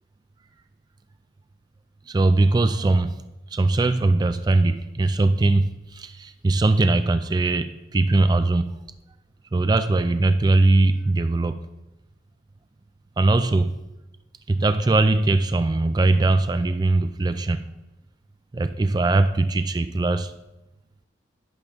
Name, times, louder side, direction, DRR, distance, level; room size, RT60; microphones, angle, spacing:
voice 1, 2.1-3.2 3.5-8.7 9.5-11.6 13.2-13.7 14.5-17.7 18.5-20.3, right 2 dB, 20° right, 10 dB, 0.3 m, -20 dB
10.5 x 5.9 x 3.5 m, 0.97 s
head